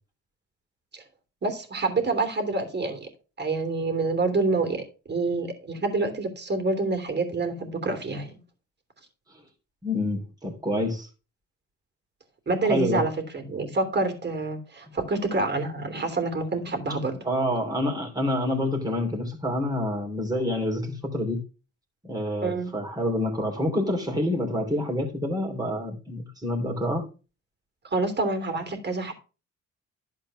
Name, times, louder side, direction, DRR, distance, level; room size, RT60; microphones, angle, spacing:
voice 1, 1.4-3.1 3.4-8.4 12.5-17.2 22.4-22.7 27.9-29.1, right 3 dB, 35° right, 3.1 m, -27 dB
voice 2, 9.8-11.1 12.6-13.0 17.2-21.4 22.0-27.1, left 1 dB, 10° right, 3.1 m, -27 dB
12.0 x 4.5 x 6.1 m
cardioid pair, 90°, 30 cm